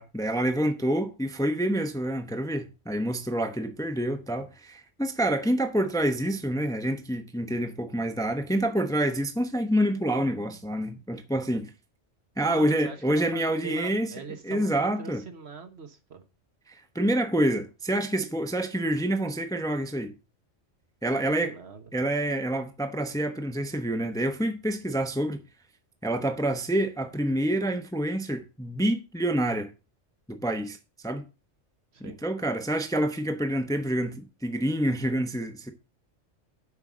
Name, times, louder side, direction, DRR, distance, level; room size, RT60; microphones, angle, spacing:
voice 1, 0.0-11.7 12.4-14.1 14.4-15.2 16.7-20.1 21.0-21.5 21.9-25.4 26.0-29.7 30.3-30.8 31.0-31.2 32.0-35.7, right 1 dB, 5° left, 0.8 m, -27 dB
voice 2, 12.5-16.2 21.3-21.8 31.9-32.2, right 5 dB, 60° right, 1.4 m, -42 dB
8.1 x 5.4 x 6.2 m
omnidirectional pair, 1.2 m